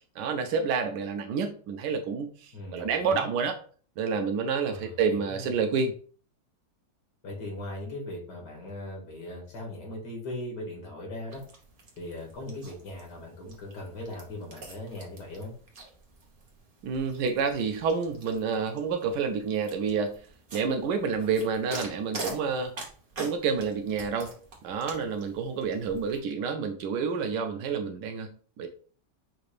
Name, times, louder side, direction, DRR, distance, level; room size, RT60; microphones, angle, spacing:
voice 1, 0.2-3.5 4.0-5.9 16.8-20.2 20.5-22.7 23.2-24.3 24.6-28.7, right 5 dB, 85° right, 6 dB, 1.2 m, -29 dB
voice 2, 2.5-3.3 4.6-5.5 7.2-11.4 12.0-15.5, left 1 dB, 80° left, -1 dB, 2.3 m, -39 dB
sound 1, 11.3-26.2, right 2 dB, 35° right, 1.0 m, -45 dB
6.0 x 2.5 x 3.2 m, 0.43 s
omnidirectional pair, 1.8 m